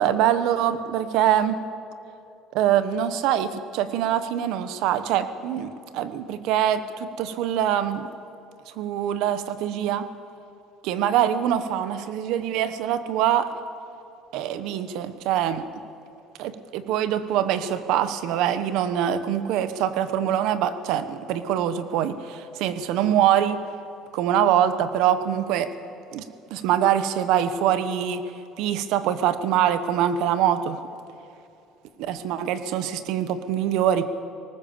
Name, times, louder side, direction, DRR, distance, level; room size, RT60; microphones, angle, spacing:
voice 1, 0.0-1.6 2.5-8.1 8.8-10.1 10.8-13.5 14.3-15.6 16.4-23.6 24.1-25.7 26.1-26.2 26.5-28.2 28.6-30.8 32.0-34.0, right 10 dB, 65° right, 12 dB, 1.0 m, -24 dB
19.5 x 19.0 x 7.2 m, 2.7 s
cardioid pair, 160°, 0 cm